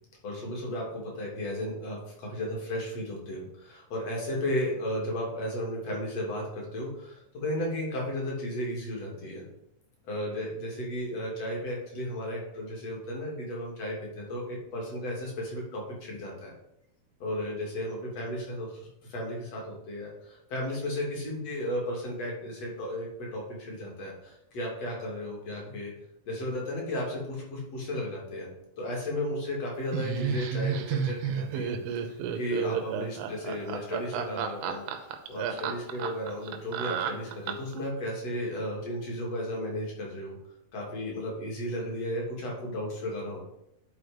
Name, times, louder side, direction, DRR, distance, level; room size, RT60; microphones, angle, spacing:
voice 1, 0.2-9.4 10.0-16.5 17.2-25.9 26.3-28.5 28.8-40.4 40.7-43.4, left 1 dB, 45° left, -2 dB, 3.2 m, -34 dB
Laughter, 29.9-37.8, right 7 dB, 80° right, 2.6 m, -31 dB
11.0 x 4.5 x 5.1 m, 0.81 s
omnidirectional pair, 4.3 m